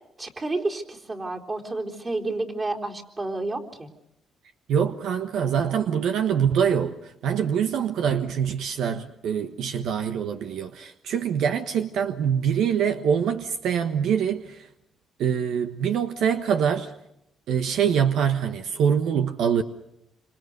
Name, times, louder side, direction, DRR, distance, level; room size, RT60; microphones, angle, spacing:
voice 1, 0.2-3.9, right 2 dB, 30° right, 4.0 m, -30 dB
voice 2, 4.7-14.7 15.2-16.9 17.5-19.6, right 7 dB, 80° right, 1.3 m, -24 dB
27.0 x 26.0 x 6.7 m
cardioid pair, 90°, 0 cm